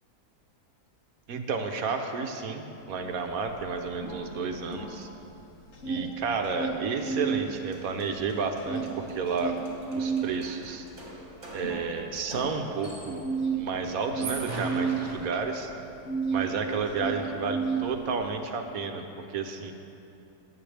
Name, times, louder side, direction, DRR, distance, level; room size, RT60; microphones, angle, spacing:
voice 1, 1.3-5.1 5.9-9.5 9.9-10.8 11.5-13.2 13.5-15.7 16.3-19.7, right 4 dB, 65° right, 5 dB, 1.2 m, -31 dB
sound 1, 3.0-3.1 3.3-5.3 5.6-7.5 7.8-16.5 16.8-18.3, right 5 dB, 45° left, 1.4 m, -32 dB
sound 2, 7.4-7.5 7.7-13.4 14.0-15.8, right 2 dB, 45° right, 2.0 m, -42 dB
20.5 x 7.8 x 3.4 m, 2.9 s
omnidirectional pair, 1.7 m